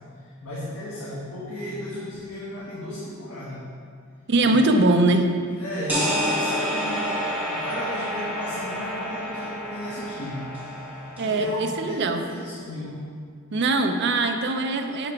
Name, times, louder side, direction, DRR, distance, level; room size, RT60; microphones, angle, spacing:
voice 1, 0.4-3.6 4.4-4.8 5.6-13.1, left 1 dB, 85° left, -9 dB, 1.5 m, -34 dB
voice 2, 4.3-5.3 11.2-12.2 13.5-15.1, right 2 dB, 55° right, 5 dB, 0.5 m, -21 dB
sound 1, 5.9-11.5, equal, 5° right, 1.6 m, -29 dB
9.2 x 3.3 x 5.0 m, 2.1 s
head